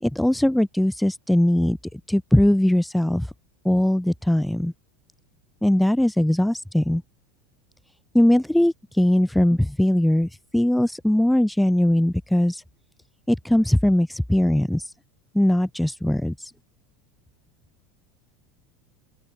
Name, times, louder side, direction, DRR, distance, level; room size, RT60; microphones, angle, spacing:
voice 1, 0.0-1.8 2.1-3.3 3.6-4.7 5.6-7.0 8.1-12.6 13.3-14.9 15.3-16.5, left 1 dB, 5° left, 1.6 m, -20 dB
open air
supercardioid pair, 120°, 0 cm